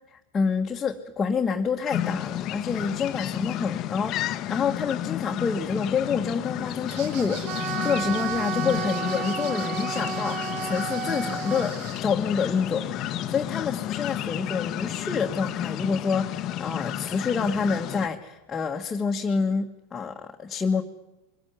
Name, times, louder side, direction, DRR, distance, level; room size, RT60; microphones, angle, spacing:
voice 1, 0.1-20.8, left 5 dB, 20° left, 0 dB, 1.7 m, -28 dB
sound 1, 1.9-18.1, left 12 dB, 40° left, 1.1 m, -32 dB
sound 2, 6.9-12.0, right 10 dB, 55° right, 1.6 m, -43 dB
Wind instrument woodwind instrument, 7.5-11.7, right 8 dB, 30° right, 1.3 m, -32 dB
23.5 x 15.5 x 9.6 m, 0.98 s
hypercardioid pair, 100°, 0 cm